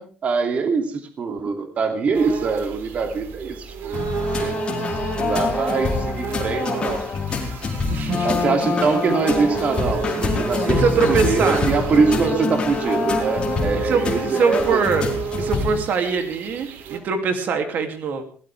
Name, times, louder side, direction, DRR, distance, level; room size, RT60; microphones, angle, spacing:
voice 1, 0.0-4.0 4.4-4.6 5.2-7.0 8.2-10.8 11.1-14.8, right 4 dB, 40° right, 5 dB, 2.7 m, -23 dB
sound 1, 2.1-17.0, right 6 dB, 80° right, 3.0 m, -31 dB
sound 2, 3.9-15.8, left 4 dB, 30° left, 4.4 m, -25 dB
voice 2, 7.9-8.3 10.7-11.7 13.7-15.1 15.4-18.2, right 5 dB, 55° right, 6 dB, 2.8 m, -23 dB
21.0 x 18.0 x 3.5 m, 0.42 s
cardioid pair, 145°, 3 cm